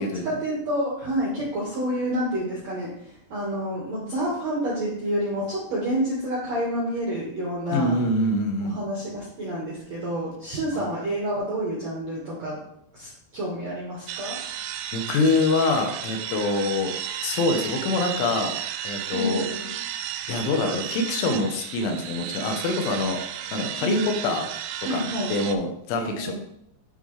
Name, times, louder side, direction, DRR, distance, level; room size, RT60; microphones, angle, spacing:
voice 1, 0.0-8.0 8.6-12.6 12.9-14.3 19.1-19.7 23.8-24.1 24.8-25.3 26.0-26.3, equal, 65° right, -5 dB, 1.7 m, -29 dB
voice 2, 7.7-8.8 10.7-10.9 14.9-16.9 17.2-18.5 18.8-19.5 20.3-23.2 23.5-24.5 24.9-25.0 25.3-26.3, left 2 dB, 80° left, 4 dB, 3.3 m, -25 dB
sound 1, 14.1-25.6, right 10 dB, 90° right, 3.1 m, -33 dB
10.5 x 4.0 x 3.2 m, 0.74 s
omnidirectional pair, 5.5 m